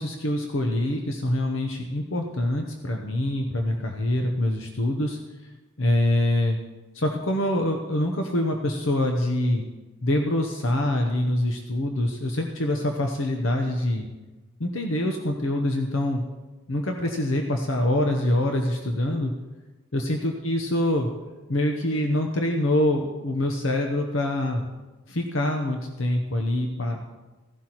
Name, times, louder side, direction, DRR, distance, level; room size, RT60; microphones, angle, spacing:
voice 1, 0.0-5.5 5.8-6.6 6.9-9.6 10.0-14.1 14.6-16.2 16.7-19.3 19.9-21.1 21.5-24.6 25.1-27.0, left 1 dB, 65° left, 3 dB, 0.9 m, -25 dB
16.0 x 11.5 x 3.0 m, 1.2 s
head